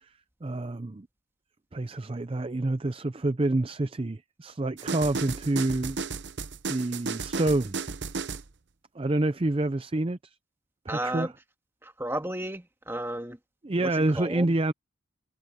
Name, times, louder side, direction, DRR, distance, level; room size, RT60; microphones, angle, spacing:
voice 1, 0.4-1.1 1.7-6.0 6.7-7.8 9.0-10.3 10.9-11.3 13.6-14.7, right 2 dB, 30° right, 0.5 m, -27 dB
sound 1, 4.8-8.5, right 4 dB, 60° right, 0.8 m, -34 dB
voice 2, 10.9-11.3 11.8-13.4 13.8-14.5, right 1 dB, 10° right, 1.8 m, -33 dB
head